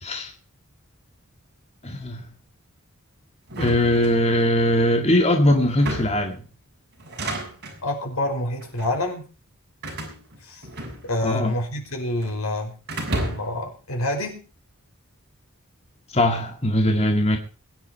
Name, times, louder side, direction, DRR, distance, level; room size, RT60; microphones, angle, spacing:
voice 1, 0.0-0.3 1.8-2.2 3.6-6.4 11.2-11.5 16.1-17.4, left 1 dB, 30° left, 4 dB, 1.9 m, -20 dB
sound 1, 3.5-4.6 5.6-6.3 7.0-7.8 8.6-9.0 9.8-11.3 11.6-12.4 12.9-13.6, right 1 dB, 50° right, 6.8 m, -32 dB
voice 2, 7.8-9.2 10.4-10.6 11.0-12.7 13.2-14.4, left 1 dB, 75° left, 3 dB, 5.5 m, -27 dB
22.0 x 10.5 x 4.6 m, 0.36 s
head